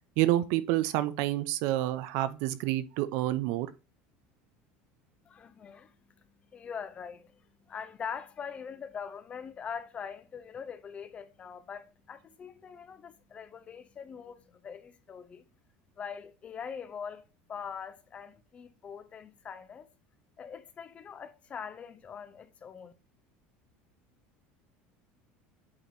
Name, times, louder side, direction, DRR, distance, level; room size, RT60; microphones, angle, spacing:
voice 1, 0.2-3.7, right 15 dB, 65° right, 0.6 m, -28 dB
voice 2, 5.3-15.4 16.0-19.9 20.4-22.9, left 7 dB, 25° left, 0.6 m, -43 dB
8.7 x 3.0 x 4.1 m
supercardioid pair, 140°, 5 cm